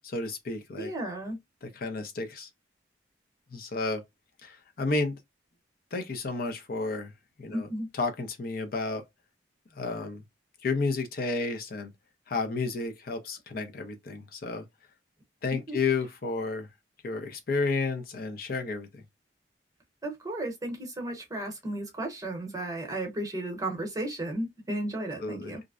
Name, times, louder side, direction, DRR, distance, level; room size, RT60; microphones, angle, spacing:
voice 1, 0.0-0.9 1.6-2.5 3.5-4.0 4.4-5.2 5.9-7.1 7.4-7.7 8.0-9.0 9.8-10.2 10.6-11.9 12.3-14.6 15.4-16.7 17.0-18.9 25.2-25.5, left 3 dB, 55° left, 0.5 m, -31 dB
voice 2, 0.8-1.4 7.5-7.9 15.5-15.8 20.0-25.6, right 1 dB, 20° right, 0.8 m, -34 dB
2.5 x 2.0 x 2.4 m
head